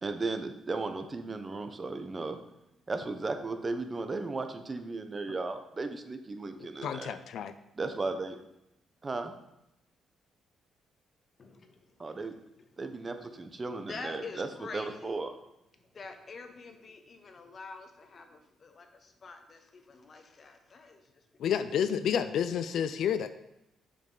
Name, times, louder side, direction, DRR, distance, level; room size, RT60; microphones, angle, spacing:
voice 1, 0.0-2.4 2.9-7.2 7.8-8.4 9.0-9.3 12.0-12.4 12.8-14.5 14.7-15.3, right 3 dB, 30° right, 8 dB, 0.7 m, -35 dB
voice 2, 6.8-7.5 21.4-23.3, left 8 dB, 70° left, 11 dB, 0.4 m, -30 dB
voice 3, 11.4-13.3 13.9-15.2 15.8-21.3 21.8-21.9, left 4 dB, 45° left, 6 dB, 1.0 m, -47 dB
7.2 x 5.1 x 3.9 m, 0.86 s
cardioid pair, 90°, 0 cm